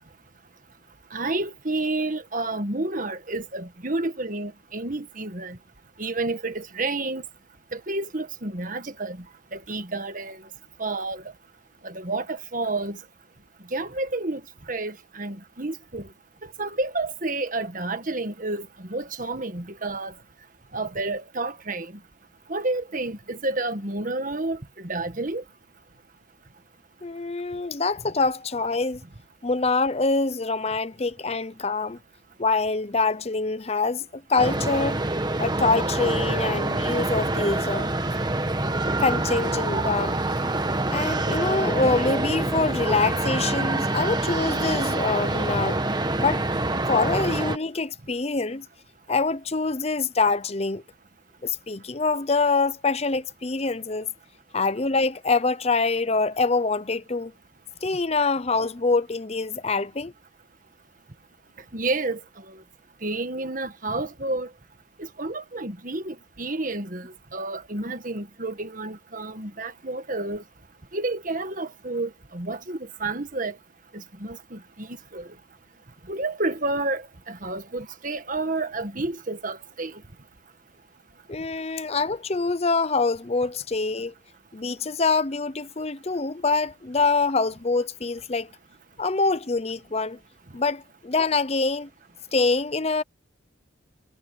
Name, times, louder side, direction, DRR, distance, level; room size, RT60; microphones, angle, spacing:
voice 1, 1.1-5.6 6.0-7.2 7.7-9.2 9.5-10.4 10.8-11.2 11.8-13.0 13.7-14.4 14.7-16.1 16.6-20.1 20.7-21.9 22.5-25.4 61.7-62.2 62.5-62.6 63.0-64.5 65.0-70.4 70.9-73.6 73.9-75.3 76.1-80.0, right 2 dB, 40° right, 1.6 m, -30 dB
voice 2, 27.0-29.0 29.4-32.0 32.4-35.0 35.4-37.9 39.0-40.2 40.9-45.8 46.2-46.4 46.9-48.7 49.1-50.8 51.4-54.1 54.5-57.3 57.8-60.1 81.3-84.1 84.5-88.5 89.0-90.2 90.5-91.9 92.3-93.0, left 3 dB, 30° left, 0.7 m, -25 dB
sound 1, 34.4-47.6, right 2 dB, 20° right, 1.1 m, -26 dB
head